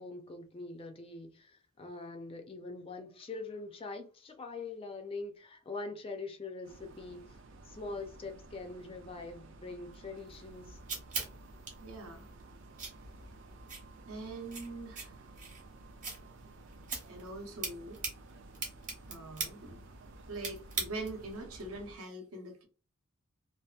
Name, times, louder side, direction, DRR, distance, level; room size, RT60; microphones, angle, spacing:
voice 1, 0.0-7.4 7.7-10.8, left 3 dB, 25° left, 0.3 m, -43 dB
sound 1, 6.6-22.0, right 2 dB, 55° right, 0.4 m, -54 dB
sound 2, 10.3-21.3, right 4 dB, 35° right, 0.8 m, -43 dB
voice 2, 11.8-12.3 14.1-15.2 17.1-18.0 19.1-19.9 20.3-22.6, right 2 dB, 75° right, 0.8 m, -43 dB
2.6 x 2.3 x 2.3 m
head